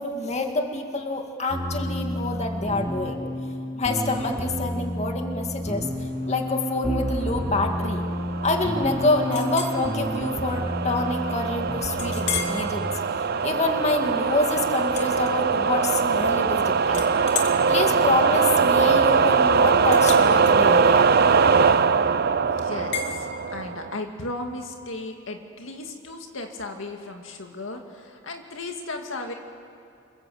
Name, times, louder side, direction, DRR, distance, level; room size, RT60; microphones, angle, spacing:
voice 1, 0.0-3.2 3.7-8.0 8.4-12.9 13.4-17.1 17.7-21.1, left 2 dB, 35° left, 3 dB, 2.2 m, -27 dB
sound 1, 1.5-12.9, equal, 10° right, 2.9 m, -30 dB
sound 2, 7.5-24.0, right 5 dB, 50° right, 0.7 m, -22 dB
Chink clink, 9.3-9.8 10.3-10.5 11.0-11.1 12.0-12.6 13.1-13.4 14.9-15.8 16.2-16.6 16.9-22.0 22.9-23.1, left 6 dB, 60° left, 2.4 m, -34 dB
voice 2, 22.6-29.3, left 2 dB, 75° left, 3 dB, 2.2 m, -35 dB
27.5 x 22.5 x 7.9 m, 2.6 s
head